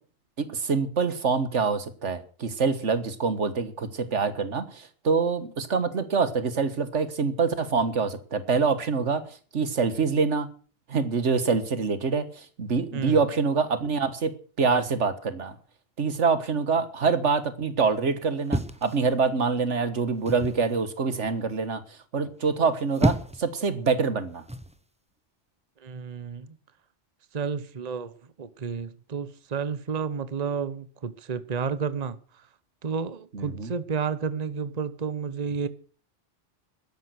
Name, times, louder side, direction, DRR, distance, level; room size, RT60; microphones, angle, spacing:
voice 1, 0.4-9.2 9.5-10.5 10.9-14.3 14.6-15.6 16.0-21.8 22.1-24.4 33.3-33.7, right 5 dB, 85° right, 1.8 m, -25 dB
sound 1, 18.5-19.5 20.3-20.7 22.6-23.5 24.5-24.8, right 1 dB, 5° right, 0.9 m, -29 dB
voice 2, 25.8-26.5 27.3-28.1 28.4-32.4 32.8-35.7, right 6 dB, 35° right, 1.0 m, -31 dB
13.0 x 10.5 x 8.1 m
omnidirectional pair, 1.2 m